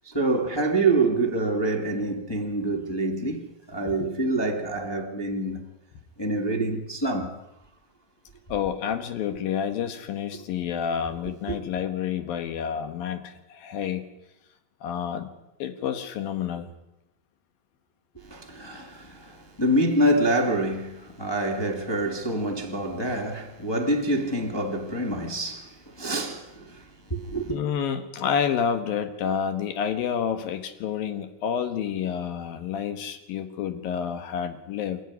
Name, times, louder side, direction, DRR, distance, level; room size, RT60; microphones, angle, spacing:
voice 1, 0.0-5.6 6.2-7.3 11.5-11.6 18.2-27.6, right 2 dB, 10° left, 1.2 m, -26 dB
voice 2, 8.5-14.1 14.8-15.3 15.6-16.7 27.5-35.0, left 8 dB, 70° left, 3.1 m, -29 dB
27.5 x 13.0 x 9.6 m
omnidirectional pair, 4.5 m